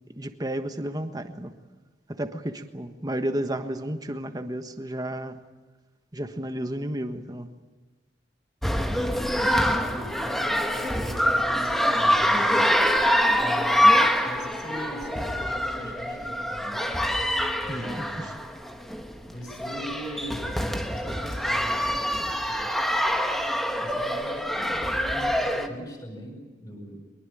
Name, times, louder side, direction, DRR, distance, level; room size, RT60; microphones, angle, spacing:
voice 1, 0.2-1.5 2.1-5.4 6.1-7.5 17.7-18.3, right 1 dB, 20° right, 1.4 m, -32 dB
sound 1, 8.6-25.7, equal, ahead, 1.5 m, -25 dB
voice 2, 8.9-12.6 13.4-16.8 17.6-18.3 19.2-20.6 20.9-22.7 23.8-27.0, equal, 20° left, 7.7 m, -40 dB
24.0 x 21.5 x 9.1 m
head